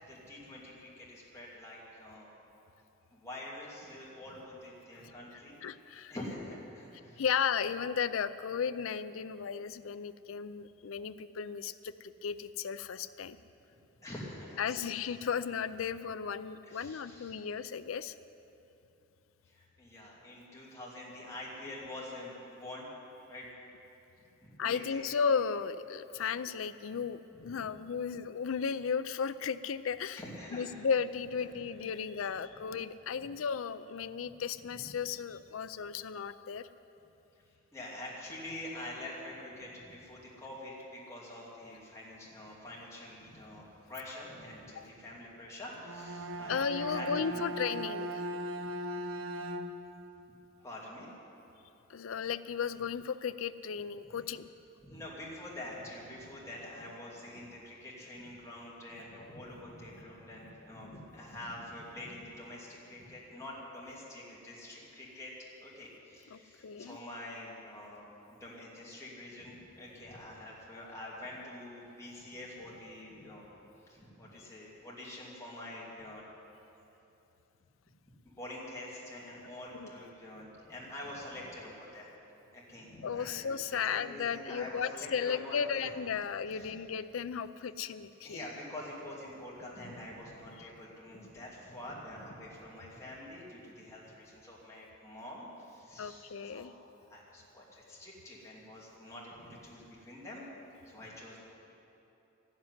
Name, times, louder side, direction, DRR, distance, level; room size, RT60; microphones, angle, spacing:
voice 1, 0.1-2.3 3.1-5.5 6.1-7.2 14.0-14.8 16.6-17.4 19.4-22.9 23.3-23.5 24.4-25.1 27.3-27.6 30.2-30.7 31.5-31.6 32.0-32.1 34.7-34.8 37.4-37.5 37.7-47.4 50.6-51.1 54.1-54.2 54.8-65.3 65.6-73.5 73.9-76.2 78.1-82.1 82.5-86.7 88.2-96.8 97.1-100.4 100.8-101.4, left 1 dB, 15° left, -6 dB, 2.5 m, -46 dB
voice 2, 5.6-6.1 7.2-13.4 14.6-18.1 24.6-30.2 30.5-36.7 44.8-44.9 46.5-48.2 51.9-54.5 66.3-67.0 79.7-79.9 83.0-88.4 90.6-90.7 96.0-96.7, left 6 dB, 80° left, 13 dB, 0.5 m, -35 dB
Bowed string instrument, 45.7-50.0, right 1 dB, 75° right, 0.8 m, -38 dB
13.5 x 7.4 x 9.7 m, 2.9 s
head